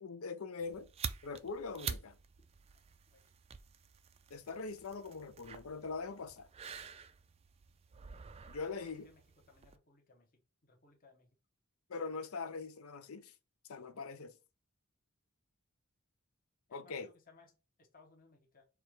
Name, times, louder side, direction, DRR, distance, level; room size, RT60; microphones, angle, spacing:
voice 1, 0.0-0.9 1.2-2.2 4.3-6.5 8.5-9.1 11.9-13.3 13.7-14.3 16.7-17.1, left 4 dB, 75° left, 0.6 m, -42 dB
sound 1, 0.6-9.8, right 6 dB, 30° right, 0.3 m, -48 dB
voice 2, 9.0-11.3 16.7-18.7, left 3 dB, 40° left, 1.1 m, -64 dB
4.7 x 2.4 x 4.7 m
head